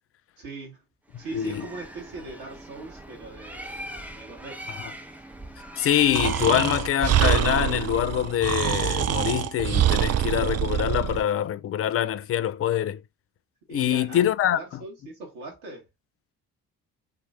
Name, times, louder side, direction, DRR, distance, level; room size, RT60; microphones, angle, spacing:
voice 1, 0.4-0.8 1.2-4.6 13.7-15.9, right 3 dB, 70° right, 2.6 m, -40 dB
Bird, 1.1-7.2, equal, 5° right, 1.0 m, -41 dB
voice 2, 1.3-1.7 4.8-4.9 5.8-13.0 13.7-14.6, left 11 dB, 30° left, 0.5 m, -24 dB
Breathing, 6.1-11.2, right 11 dB, 35° right, 0.5 m, -25 dB
5.9 x 3.1 x 2.8 m
figure-of-eight pair, 45°, 45 cm